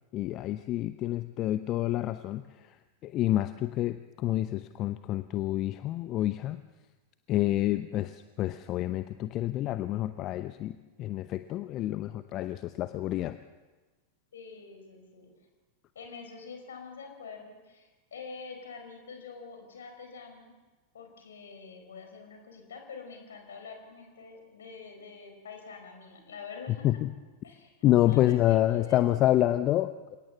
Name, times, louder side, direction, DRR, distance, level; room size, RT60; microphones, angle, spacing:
voice 1, 0.1-2.4 3.0-6.6 7.3-13.4 26.8-27.1 27.8-30.2, left 14 dB, 35° left, 12 dB, 0.8 m, -28 dB
voice 2, 14.3-15.3 15.9-20.5 20.9-26.9 27.4-29.1, left 5 dB, 65° left, 5 dB, 4.7 m, -46 dB
28.0 x 18.0 x 7.1 m, 1.2 s
figure-of-eight pair, 90°, 0 cm